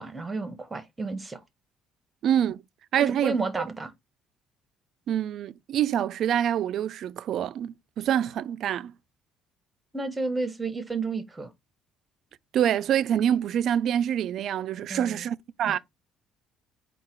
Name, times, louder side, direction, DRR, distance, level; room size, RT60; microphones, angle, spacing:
voice 1, 0.0-1.4 3.0-3.9 9.9-11.5 14.9-15.2 15.7-15.8, right 3 dB, 15° right, 0.8 m, -31 dB
voice 2, 2.2-2.6 2.9-3.4 5.1-8.9 12.5-15.8, right 10 dB, 55° right, 0.3 m, -26 dB
4.6 x 2.2 x 4.3 m
cardioid pair, 125°, 0 cm